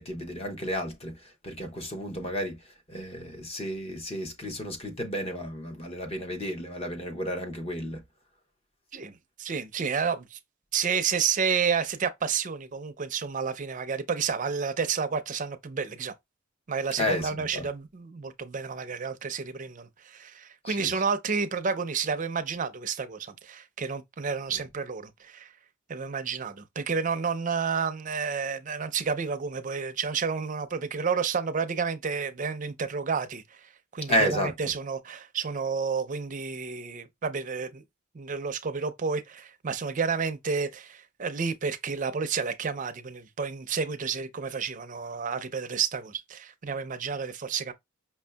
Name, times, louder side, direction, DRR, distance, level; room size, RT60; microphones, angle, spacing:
voice 1, 0.0-2.6 2.9-8.0 17.0-17.7 20.7-20.9 34.1-34.5, equal, 30° left, 0.9 m, -32 dB
voice 2, 9.4-10.4 10.7-16.1 16.7-25.5 25.9-33.4 33.9-37.8 38.1-47.7, right 5 dB, 40° right, 0.5 m, -30 dB
5.5 x 2.7 x 2.2 m
head